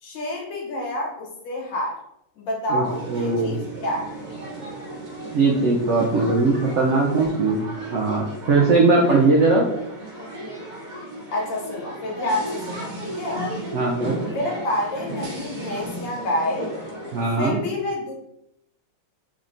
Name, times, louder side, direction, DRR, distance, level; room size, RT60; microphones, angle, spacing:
voice 1, 0.0-2.0 2.4-4.1 11.3-13.4 14.2-16.7 17.4-18.1, left 1 dB, 90° left, -1 dB, 1.7 m, -28 dB
sound 1, 2.8-17.4, right 1 dB, 40° right, 0.6 m, -35 dB
voice 2, 3.1-3.6 5.3-7.6 7.9-9.6 13.7-14.2 17.1-17.6, right 3 dB, 90° right, -2 dB, 0.6 m, -19 dB
3.7 x 3.2 x 2.6 m, 0.80 s
omnidirectional pair, 1.9 m